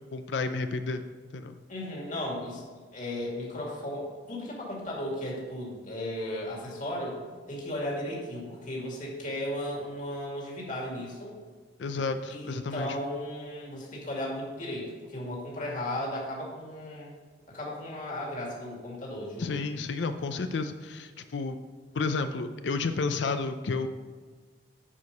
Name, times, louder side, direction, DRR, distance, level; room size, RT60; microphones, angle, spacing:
voice 1, 0.1-1.0 1.3-1.6 11.8-13.0 19.4-21.6 21.9-23.9, left 4 dB, 75° left, 9 dB, 0.5 m, -31 dB
voice 2, 1.7-2.6 2.9-7.2 7.5-11.4 12.3-17.1 17.5-19.6, left 1 dB, 45° left, -3 dB, 2.3 m, -35 dB
9.7 x 4.8 x 5.3 m, 1.5 s
head